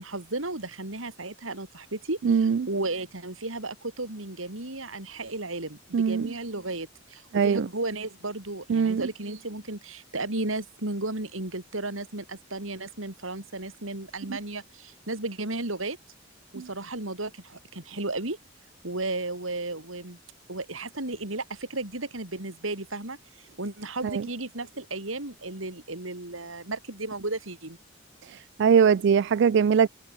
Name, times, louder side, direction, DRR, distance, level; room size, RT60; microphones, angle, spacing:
voice 1, 0.0-16.0 16.5-18.4 18.8-20.2 20.5-27.8, right 2 dB, 80° right, 4.3 m, -34 dB
voice 2, 2.2-2.7 5.9-6.3 7.3-7.7 8.7-9.0 16.6-16.7 24.0-24.3 28.2-29.9, right 6 dB, 65° right, 0.4 m, -22 dB
head